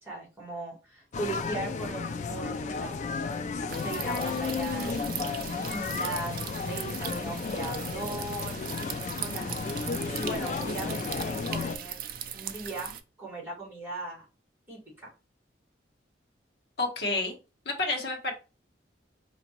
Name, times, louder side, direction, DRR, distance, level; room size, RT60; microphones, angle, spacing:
voice 1, 0.0-3.2 3.7-5.0 5.4-8.7 9.2-9.6 10.1-12.0 12.3-14.2 14.7-15.1, right 2 dB, 10° right, -4 dB, 1.8 m, -38 dB
sound 1, 1.1-11.8, left 4 dB, 40° left, 0.3 m, -33 dB
sound 2, 3.7-13.0, right 9 dB, 50° right, 0.4 m, -39 dB
voice 2, 16.8-17.3 17.7-18.3, left 2 dB, 60° left, 1 dB, 1.0 m, -29 dB
4.3 x 2.9 x 2.9 m, 0.31 s
head